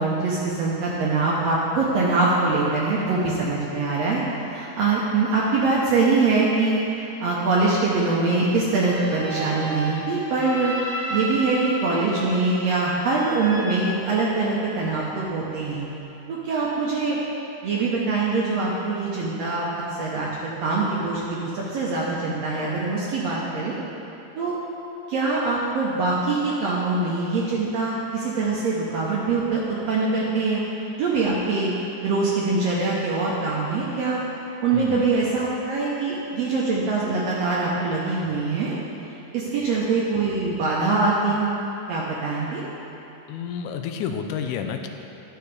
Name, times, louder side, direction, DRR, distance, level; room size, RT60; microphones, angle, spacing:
voice 1, 0.0-15.9 16.3-17.2 17.6-23.7 24.4-24.6 25.1-30.6 31.0-31.7 32.0-34.2 34.6-38.8 39.3-41.6 41.9-42.6, right 3 dB, 70° right, -5 dB, 1.7 m, -23 dB
sound 1, 8.7-14.7, right 1 dB, 35° left, 1.2 m, -33 dB
voice 2, 34.7-35.1 39.6-39.7 43.3-44.9, left 7 dB, 85° left, 6 dB, 2.1 m, -30 dB
11.5 x 6.8 x 3.3 m, 2.9 s
omnidirectional pair, 3.6 m